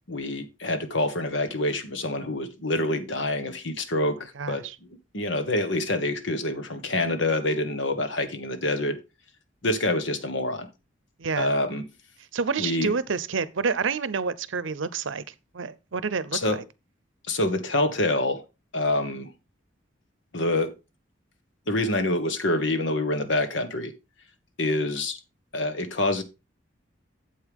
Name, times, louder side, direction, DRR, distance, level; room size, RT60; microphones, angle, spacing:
voice 1, 0.1-4.6 5.1-9.0 9.6-10.7 11.4-11.8 12.6-12.9 16.3-16.6 17.3-18.4 18.7-19.3 20.3-20.7 21.7-23.9 24.6-25.2 25.5-26.2, left 1 dB, 70° left, 1.4 m, -26 dB
voice 2, 4.4-4.7 11.2-11.5 12.3-15.2 15.5-16.6, right 5 dB, 80° right, 0.7 m, -28 dB
8.4 x 7.8 x 3.6 m
head